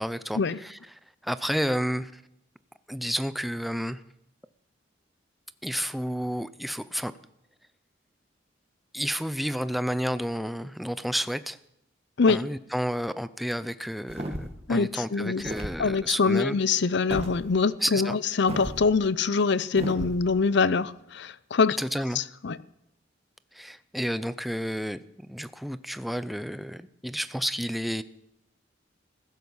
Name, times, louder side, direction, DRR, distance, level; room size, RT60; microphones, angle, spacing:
voice 1, 0.0-2.2 2.9-4.0 5.6-7.1 8.9-11.6 12.3-16.6 17.8-18.2 21.8-22.2 23.5-28.0, equal, ahead, 0.5 m, -31 dB
sound 1, 14.1-14.6 15.4-15.8 17.1-17.3 18.5-18.8 19.8-20.2, right 1 dB, 35° right, 2.0 m, -34 dB
voice 2, 14.7-15.4 15.8-21.8 22.2-22.6, left 4 dB, 65° left, 0.6 m, -24 dB
15.5 x 12.0 x 7.2 m
head